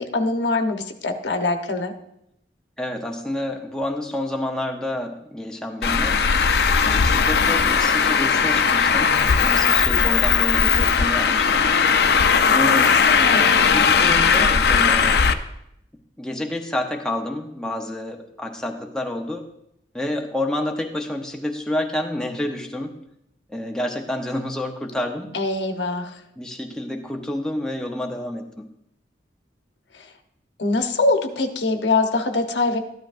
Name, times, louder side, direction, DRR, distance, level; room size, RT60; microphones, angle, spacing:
voice 1, 0.0-1.9 12.4-13.5 25.3-26.2 29.9-30.1 30.6-32.8, left 3 dB, 80° left, 5 dB, 1.0 m, -24 dB
voice 2, 2.8-6.2 6.8-11.7 12.5-12.9 13.7-15.3 16.2-19.4 19.9-23.0 23.5-25.3 26.4-28.7, left 1 dB, 5° left, 1 dB, 0.7 m, -29 dB
Traffic noise roadway noise, 5.8-15.3, left 6 dB, 65° left, 0.5 m, -18 dB
13.5 x 11.0 x 2.6 m, 0.79 s
head